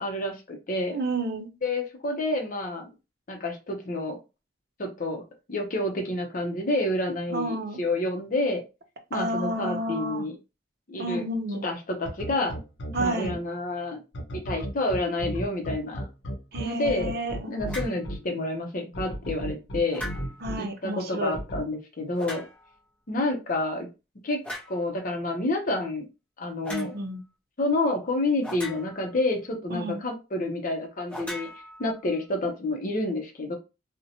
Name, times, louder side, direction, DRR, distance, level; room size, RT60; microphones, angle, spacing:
voice 1, 0.0-1.0 1.6-2.8 3.3-4.2 4.8-5.2 5.5-8.6 9.1-10.4 10.9-11.2 11.6-12.5 13.0-14.0 14.3-16.0 16.6-17.1 17.5-20.0 20.6-22.4 23.1-23.9 24.2-24.4 24.7-26.1 26.4-26.9 27.6-31.5 31.8-33.6, left 2 dB, 45° left, 0.6 m, -29 dB
voice 2, 0.9-1.5 7.3-7.8 9.1-10.3 11.0-11.7 12.9-13.4 16.5-17.8 20.4-21.4 26.7-27.2 29.7-30.0, right 1 dB, 55° right, 0.6 m, -31 dB
sound 1, 12.1-13.4 14.1-18.2 18.9-20.6 21.3-21.6, equal, 90° left, 0.7 m, -33 dB
sound 2, 17.7-18.0 19.9-20.5 22.2-22.8 24.4-24.8 26.6-26.9 28.4-29.2 31.1-32.2, left 1 dB, 5° left, 0.7 m, -39 dB
2.7 x 2.1 x 2.7 m
head